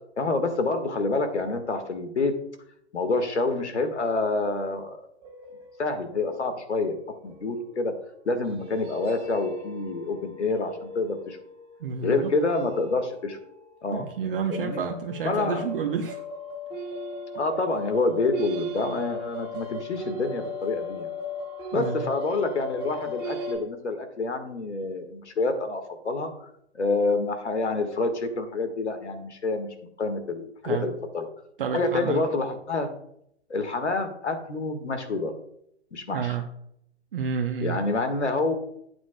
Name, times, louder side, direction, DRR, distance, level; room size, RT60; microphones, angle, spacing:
voice 1, 0.2-2.3 2.9-5.0 5.8-7.0 7.2-7.9 8.2-11.4 12.0-13.4 13.8-14.8 15.2-15.7 17.3-21.1 21.7-26.3 26.7-29.7 30.0-31.3 31.7-32.9 33.5-35.3 35.9-36.4 37.6-38.5, left 3 dB, 70° left, 8 dB, 1.7 m, -27 dB
sound 1, 5.2-7.8 8.4-13.9 14.3-23.6, left 2 dB, 15° right, 2.1 m, -38 dB
voice 2, 11.8-12.3 13.9-16.2 21.7-22.0 30.6-30.9 31.6-32.2 36.1-36.5 37.1-37.8, right 6 dB, 50° right, 3 dB, 0.9 m, -29 dB
12.5 x 8.7 x 2.2 m, 0.74 s
figure-of-eight pair, 120°, 35 cm